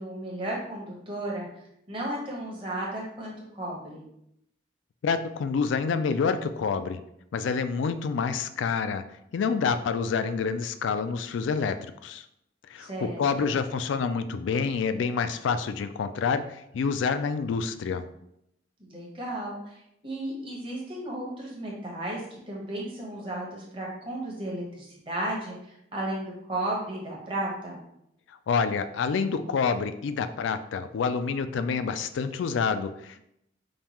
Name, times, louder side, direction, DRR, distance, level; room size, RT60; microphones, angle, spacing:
voice 1, 0.0-1.5 1.9-4.0 12.8-13.6 18.8-27.8, right 1 dB, 30° right, -3 dB, 1.1 m, -34 dB
voice 2, 5.0-7.0 7.3-9.0 9.3-11.8 12.0-12.2 12.7-18.0 28.5-33.3, left 5 dB, 85° left, 11 dB, 0.3 m, -27 dB
5.3 x 2.3 x 3.0 m, 0.78 s
head